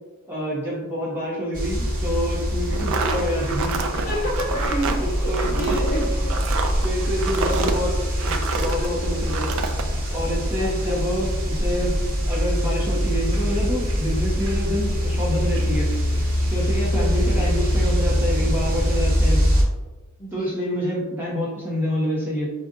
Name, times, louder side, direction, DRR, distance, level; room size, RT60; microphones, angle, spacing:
voice 1, 0.3-3.9 4.5-5.9 6.8-9.5 10.1-12.0 12.2-15.9 16.5-19.4 20.3-22.5, equal, 10° right, -6 dB, 1.0 m, -27 dB
sound 1, 1.5-19.6, equal, 40° right, 1.0 m, -23 dB
sound 2, 2.7-8.9 9.2-9.8, right 4 dB, 65° right, 0.4 m, -28 dB
sound 3, 2.9-17.9, right 2 dB, 85° right, 1.0 m, -45 dB
voice 2, 3.9-4.8 5.2-6.4 10.6-11.0 16.8-17.5 20.2-21.0, equal, 40° left, -3 dB, 0.7 m, -32 dB
5.1 x 2.5 x 2.6 m, 1.2 s
head